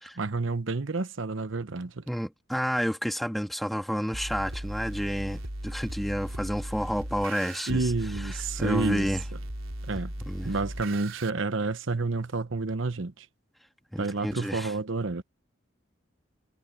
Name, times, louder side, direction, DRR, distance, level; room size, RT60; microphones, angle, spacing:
voice 1, 0.2-2.0 7.7-9.1 9.9-10.1 10.4-13.3 14.0-15.2, right 3 dB, 75° right, 0.9 m, -29 dB
voice 2, 2.1-7.9 8.2-8.3 8.6-9.2 10.3-10.5 13.9-14.7, equal, ahead, 1.8 m, -30 dB
sound 1, 4.1-11.3, right 1 dB, 90° right, 4.0 m, -37 dB
head